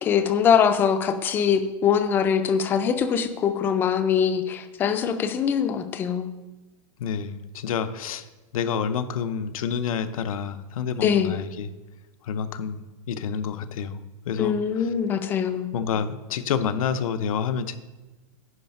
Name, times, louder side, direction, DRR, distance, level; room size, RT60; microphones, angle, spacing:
voice 1, 0.0-6.3 11.0-11.3 14.4-15.7, left 7 dB, 10° left, 9 dB, 0.3 m, -23 dB
voice 2, 7.0-8.3 8.5-11.7 12.2-14.9 15.7-17.8, left 7 dB, 90° left, 10 dB, 0.7 m, -28 dB
10.0 x 4.9 x 5.4 m, 1.1 s
supercardioid pair, 170°, 17 cm